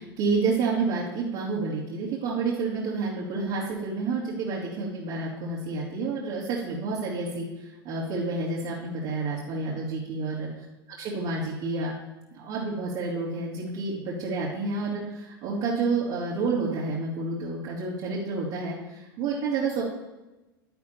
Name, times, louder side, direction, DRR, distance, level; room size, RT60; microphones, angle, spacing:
voice 1, 0.0-10.6 11.0-11.9 12.3-19.8, right 4 dB, 50° right, -7 dB, 2.8 m, -29 dB
11.5 x 11.5 x 2.9 m, 1.1 s
figure-of-eight pair, 85°, 12 cm